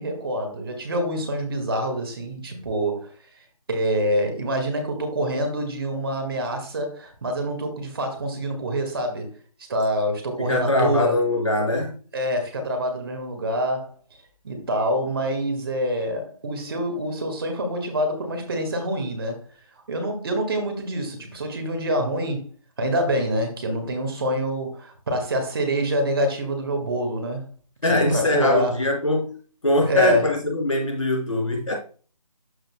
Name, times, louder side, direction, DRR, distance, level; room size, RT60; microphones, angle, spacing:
voice 1, 0.0-3.1 3.7-9.3 9.7-11.2 12.1-14.0 14.4-19.4 19.9-22.4 22.8-27.5 27.9-28.7 29.8-30.3, equal, 40° right, 1.9 m, -26 dB
voice 2, 10.4-12.0 27.8-31.8, left 1 dB, 60° left, 3.3 m, -22 dB
12.5 x 5.0 x 2.2 m
figure-of-eight pair, 155°, 19 cm